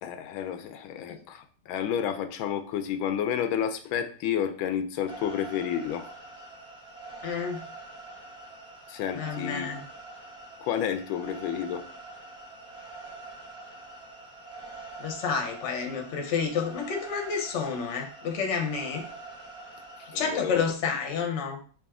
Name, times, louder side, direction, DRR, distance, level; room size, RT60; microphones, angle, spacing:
voice 1, 0.0-6.1 8.9-9.7 10.6-11.9 20.0-20.6, left 9 dB, 85° left, 8 dB, 1.4 m, -31 dB
sound 1, 5.1-20.5, right 3 dB, 5° right, 0.6 m, -44 dB
voice 2, 7.2-7.6 9.1-9.8 15.0-19.0 20.1-21.6, left 6 dB, 50° left, 3 dB, 0.9 m, -30 dB
5.0 x 2.9 x 3.6 m, 0.42 s
omnidirectional pair, 2.1 m